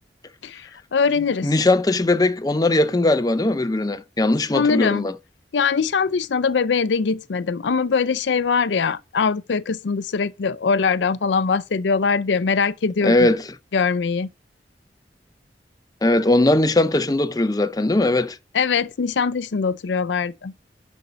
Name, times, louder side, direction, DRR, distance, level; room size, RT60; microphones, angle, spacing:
voice 1, 0.4-1.5 4.5-5.0 5.5-13.3 13.7-14.3 18.5-20.5, left 5 dB, 85° left, 0.5 m, -22 dB
voice 2, 1.4-5.1 13.0-13.5 16.0-18.4, left 2 dB, 20° left, 0.5 m, -19 dB
11.5 x 5.3 x 4.1 m
head